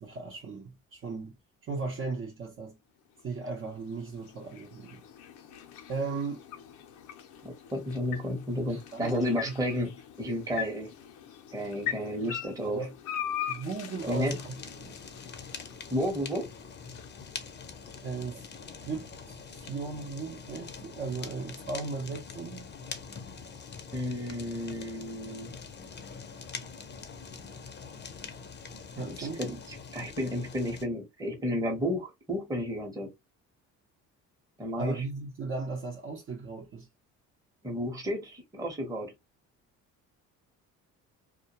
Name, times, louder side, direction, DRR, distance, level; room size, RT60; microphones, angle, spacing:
voice 1, 0.0-2.8 3.2-5.0 5.9-6.4 8.7-9.6 12.6-13.0 13.5-15.0 18.0-18.4 18.8-22.7 29.0-29.6 34.8-36.9, right 4 dB, 40° right, 0.7 m, -37 dB
sound 1, 3.0-19.2, left 10 dB, 75° left, 0.6 m, -42 dB
voice 2, 7.4-10.9 11.5-12.8 14.1-14.4 15.9-16.5 23.9-25.5 29.0-29.5 29.9-33.1 34.6-35.0 37.6-39.1, equal, 10° right, 0.9 m, -32 dB
Fire, 14.0-30.9, left 5 dB, 35° left, 0.6 m, -44 dB
2.3 x 2.2 x 2.8 m
cardioid pair, 95°, 31 cm